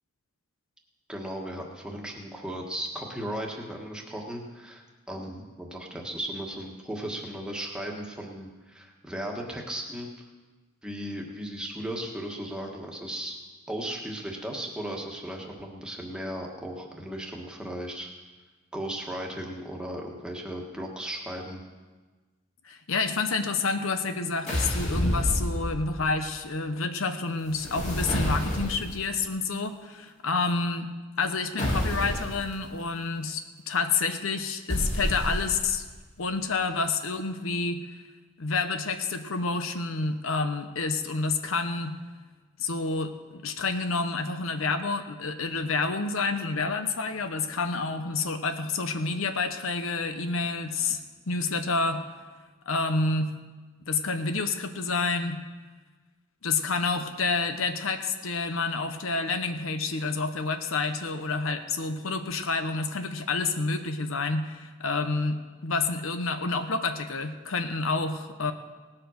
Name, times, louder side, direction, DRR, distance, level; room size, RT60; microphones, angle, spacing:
voice 1, 1.1-10.1 10.8-13.4 13.7-18.1 18.7-21.6, right 1 dB, 5° right, -1 dB, 1.5 m, -36 dB
voice 2, 22.6-30.9 31.2-35.8 36.2-37.8 38.4-42.0 42.6-52.0 52.7-53.3 53.9-55.4 56.4-68.5, left 4 dB, 75° left, 8 dB, 0.9 m, -29 dB
sound 1, 24.5-26.1 27.5-29.0 31.6-32.4 34.7-35.8, equal, 35° left, 2.7 m, -29 dB
18.5 x 7.7 x 6.4 m, 1.3 s
head